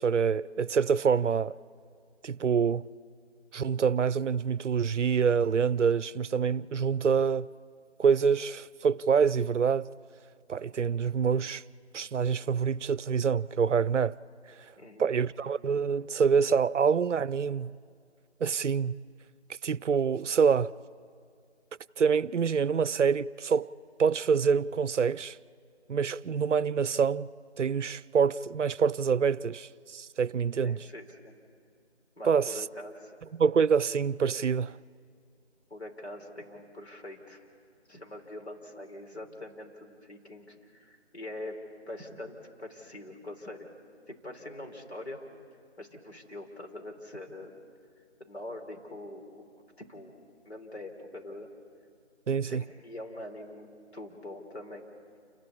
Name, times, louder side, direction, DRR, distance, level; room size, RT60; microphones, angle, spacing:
voice 1, 0.0-1.6 2.2-2.9 3.5-7.5 8.0-9.9 10.5-11.6 11.9-14.2 15.0-17.7 18.4-18.9 19.6-20.7 22.0-23.7 24.0-25.4 25.9-27.3 27.6-30.9 32.2-32.6 33.3-34.8 52.3-52.6, right 6 dB, 80° right, 0.6 m, -26 dB
voice 2, 14.8-15.1 30.6-31.3 32.2-33.1 35.7-37.5 37.9-41.6 41.9-43.7 44.1-45.2 45.8-47.5 48.2-49.4 49.9-51.5 52.4-54.9, left 1 dB, 65° left, 3.7 m, -43 dB
29.0 x 12.0 x 8.5 m
figure-of-eight pair, 175°, 35 cm